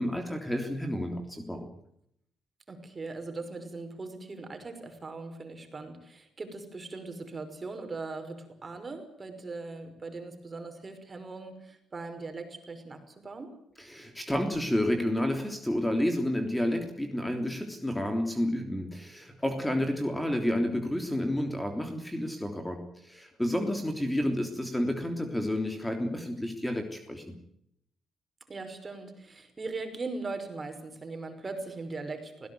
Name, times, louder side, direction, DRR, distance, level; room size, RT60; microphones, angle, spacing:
voice 1, 0.0-1.7 13.8-27.4, left 1 dB, 5° left, 5 dB, 3.4 m, -30 dB
voice 2, 2.7-13.5 19.6-20.0 28.5-32.5, right 3 dB, 30° right, 7 dB, 5.6 m, -40 dB
20.5 x 17.5 x 9.4 m, 0.73 s
cardioid pair, 90°, 0 cm